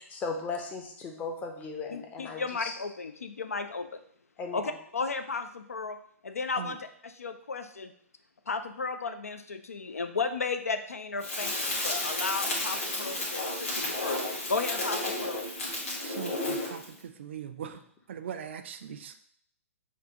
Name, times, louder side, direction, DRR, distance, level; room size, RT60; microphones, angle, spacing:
voice 1, 0.0-2.7 4.4-4.8 17.6-17.7, left 4 dB, 20° left, 3 dB, 0.7 m, -37 dB
voice 2, 1.9-4.0 4.5-6.0 6.2-7.9 8.5-14.2 14.5-15.4, left 4 dB, 75° left, 9 dB, 0.4 m, -34 dB
Crackle, 11.2-16.9, left 1 dB, 55° left, 1.7 m, -32 dB
voice 3, 16.0-16.8 17.2-17.8 18.1-19.1, right 8 dB, 50° right, 8 dB, 0.4 m, -40 dB
7.2 x 2.4 x 2.9 m, 0.65 s
figure-of-eight pair, 120°, 8 cm